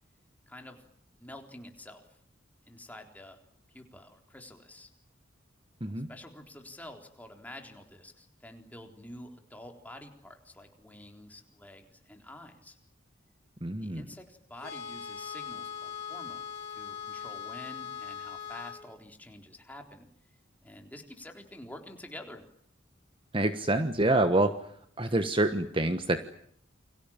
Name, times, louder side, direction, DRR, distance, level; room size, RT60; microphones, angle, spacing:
voice 1, 0.5-0.8 1.1-2.0 2.6-3.4 3.7-4.9 5.8-12.8 13.8-20.1 20.6-22.4, left 1 dB, 10° left, 3 dB, 3.8 m, -48 dB
voice 2, 13.6-14.0 23.3-24.5 25.0-26.2, right 2 dB, 25° right, 9 dB, 1.3 m, -26 dB
sound 1, 14.6-18.8, left 7 dB, 50° left, 5.3 m, -40 dB
29.5 x 24.0 x 7.3 m, 0.67 s
head